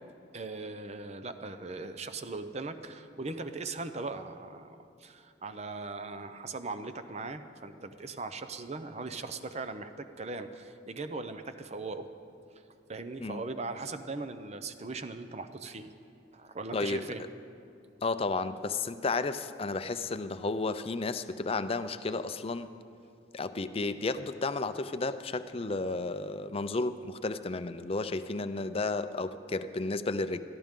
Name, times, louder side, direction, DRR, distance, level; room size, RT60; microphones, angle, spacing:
voice 1, 0.3-12.1 12.9-15.9 16.3-17.2, right 3 dB, 35° right, 9 dB, 0.7 m, -39 dB
voice 2, 18.0-22.7 23.3-30.4, left 3 dB, 30° left, 11 dB, 0.5 m, -32 dB
22.0 x 14.0 x 3.7 m, 2.5 s
head